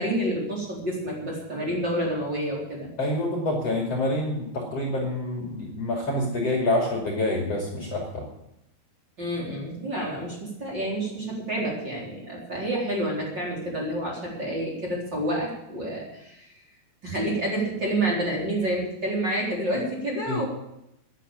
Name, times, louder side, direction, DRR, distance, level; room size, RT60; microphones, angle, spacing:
voice 1, 0.0-2.9 9.2-16.5 17.0-20.4, right 1 dB, 25° right, -4 dB, 4.4 m, -29 dB
voice 2, 3.0-8.2 20.3-20.4, left 1 dB, 40° left, -1 dB, 3.2 m, -27 dB
14.0 x 10.5 x 7.5 m, 0.83 s
omnidirectional pair, 5.0 m